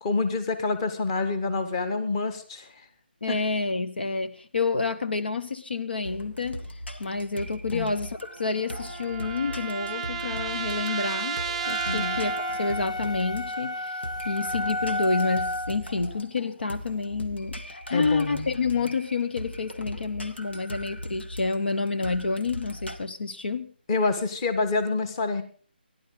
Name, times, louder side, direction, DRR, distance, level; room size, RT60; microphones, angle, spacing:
voice 1, 0.0-2.7 3.3-3.4 7.7-7.9 11.9-12.2 17.9-18.5 23.9-25.4, left 3 dB, 30° left, 10 dB, 1.8 m, -27 dB
voice 2, 3.2-6.7 7.0-11.4 11.7-23.7, left 4 dB, 70° left, 10 dB, 1.1 m, -29 dB
sound 1, 6.0-23.0, equal, 85° left, 2.2 m, -39 dB
sound 2, 8.2-12.9, right 6 dB, ahead, 1.1 m, -33 dB
sound 3, 11.6-15.8, left 1 dB, 50° left, 1.0 m, -32 dB
27.5 x 11.5 x 4.0 m, 0.42 s
figure-of-eight pair, 155°, 6 cm